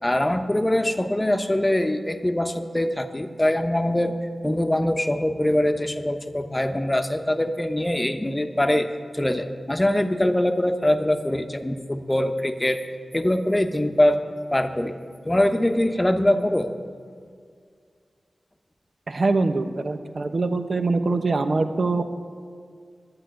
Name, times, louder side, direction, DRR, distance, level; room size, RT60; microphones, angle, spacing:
voice 1, 0.0-4.2 4.4-8.9 9.1-12.8 13.1-14.2 14.5-14.9 15.2-16.7, left 1 dB, 20° left, 7 dB, 1.0 m, -23 dB
voice 2, 19.1-22.0, right 3 dB, 60° right, 8 dB, 1.0 m, -23 dB
11.0 x 9.7 x 9.0 m, 2.2 s
wide cardioid pair, 65°, 0 cm